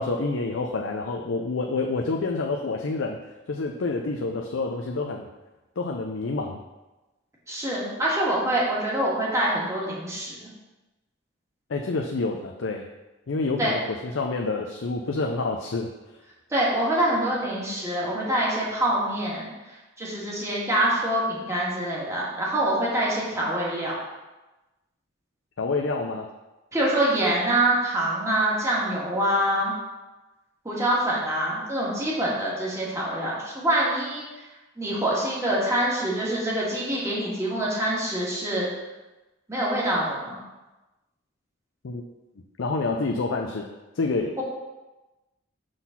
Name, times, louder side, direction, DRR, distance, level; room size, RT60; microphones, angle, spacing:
voice 1, 0.0-3.2 3.5-5.3 5.8-6.6 11.7-12.8 13.3-15.9 25.6-26.3 41.8-42.1 42.6-43.7 43.9-44.3, left 3 dB, 80° left, 2 dB, 0.5 m, -28 dB
voice 2, 7.5-10.3 13.6-13.7 16.5-19.5 20.0-23.9 26.7-29.7 30.7-34.2 34.8-38.7 39.5-40.4, right 1 dB, 15° right, -6 dB, 1.8 m, -25 dB
6.3 x 4.0 x 5.7 m, 1.1 s
head